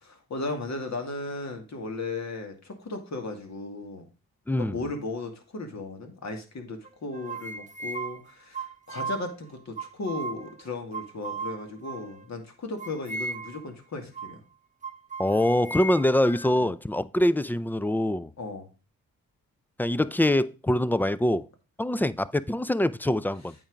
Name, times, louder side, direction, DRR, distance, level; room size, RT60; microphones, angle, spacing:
voice 1, 0.0-4.1 4.6-14.4 16.5-16.7 18.4-18.7, left 3 dB, 50° left, 2.3 m, -36 dB
voice 2, 4.5-4.8 15.2-18.3 19.8-21.5 21.8-23.5, left 1 dB, 5° left, 0.5 m, -24 dB
sound 1, 6.8-9.3 9.8-10.6 10.9-12.3 12.8-13.7 14.1-14.4 14.8-16.7, right 3 dB, 20° right, 1.0 m, -37 dB
8.7 x 4.6 x 5.1 m
supercardioid pair, 50°, 35 cm